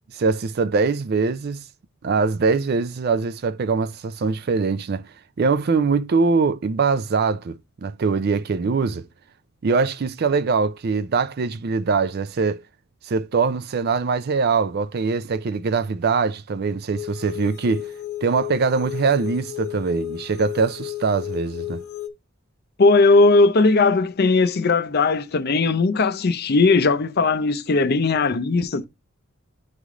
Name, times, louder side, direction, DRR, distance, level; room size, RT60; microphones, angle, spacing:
voice 1, 0.1-1.6 2.0-5.0 5.4-9.0 9.6-12.6 13.1-17.9 18.2-21.8, right 4 dB, 45° right, 0.4 m, -22 dB
sound 1, 16.9-22.1, left 13 dB, 80° left, 0.8 m, -33 dB
voice 2, 22.8-28.9, left 3 dB, 45° left, 0.5 m, -18 dB
9.4 x 3.3 x 3.6 m
head